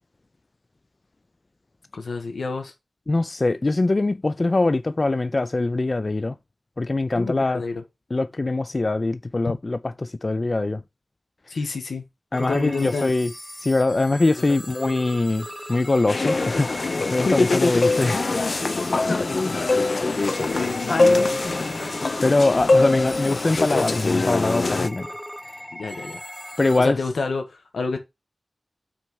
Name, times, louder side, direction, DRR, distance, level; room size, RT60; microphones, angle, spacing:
voice 1, 1.9-2.7 7.2-7.8 9.4-9.6 11.5-12.0 12.4-13.1 14.3-14.6 17.2-17.7 20.5-21.3 25.7-26.2 26.8-28.0, left 3 dB, 85° left, 1.6 m, -27 dB
voice 2, 3.1-6.4 6.8-7.6 8.1-10.8 12.3-13.3 13.6-18.2 22.2-25.1 26.6-27.0, left 2 dB, 35° left, 0.3 m, -22 dB
sound 1, 12.3-26.8, equal, 5° left, 1.0 m, -39 dB
sound 2, 16.1-24.9, left 3 dB, 50° left, 0.8 m, -23 dB
5.9 x 4.5 x 4.6 m
wide cardioid pair, 110°, 0 cm